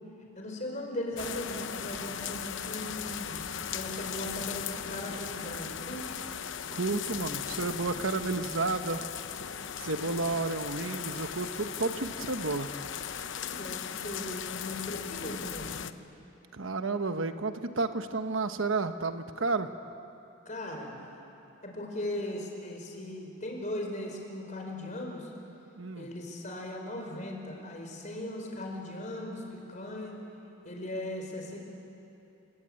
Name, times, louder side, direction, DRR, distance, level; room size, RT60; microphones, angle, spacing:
voice 1, 0.3-3.4 3.7-6.2 13.4-15.8 20.4-21.0 21.6-25.3 25.9-30.2 30.6-31.6, left 1 dB, 35° left, 1 dB, 4.8 m, -38 dB
sound 1, 1.2-15.9, left 8 dB, 65° left, 0.8 m, -38 dB
voice 2, 6.7-9.0 9.8-12.7 16.5-19.7 25.8-26.1, right 3 dB, 75° right, 8 dB, 1.2 m, -31 dB
29.0 x 21.5 x 8.9 m, 2.9 s
head